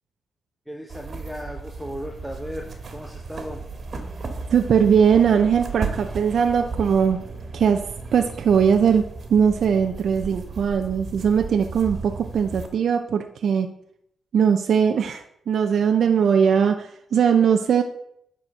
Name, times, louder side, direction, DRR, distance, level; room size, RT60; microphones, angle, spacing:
voice 1, 0.7-3.6, equal, ahead, 0 dB, 1.2 m, -36 dB
sound 1, 0.9-12.7, right 4 dB, 45° right, 1.7 m, -35 dB
voice 2, 4.5-7.2 7.5-7.8 8.1-9.0 9.3-13.7 14.3-17.8, right 7 dB, 70° right, 6 dB, 0.7 m, -20 dB
10.5 x 4.5 x 6.6 m, 0.74 s
cardioid pair, 105°, 0 cm